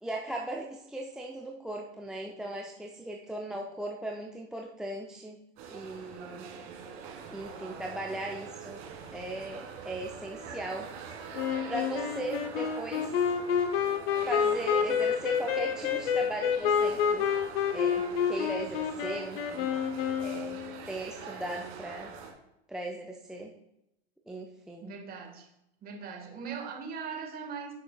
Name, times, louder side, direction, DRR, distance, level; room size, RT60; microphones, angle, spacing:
voice 1, 0.0-5.4 5.7-6.5 7.3-8.8 9.1-10.9 11.7-13.1 14.2-17.3 17.7-19.7 20.2-22.1 22.7-23.5 24.3-24.9, right 1 dB, ahead, 0 dB, 0.4 m, -38 dB
sound 1, 5.6-22.3, right 6 dB, 45° right, 2.1 m, -44 dB
Wind instrument woodwind instrument, 11.3-20.8, left 7 dB, 60° left, 0.9 m, -29 dB
voice 2, 24.8-25.5 25.8-27.7, right 6 dB, 30° right, 2 dB, 1.6 m, -40 dB
9.9 x 6.6 x 2.3 m, 0.83 s
hypercardioid pair, 100°, 33 cm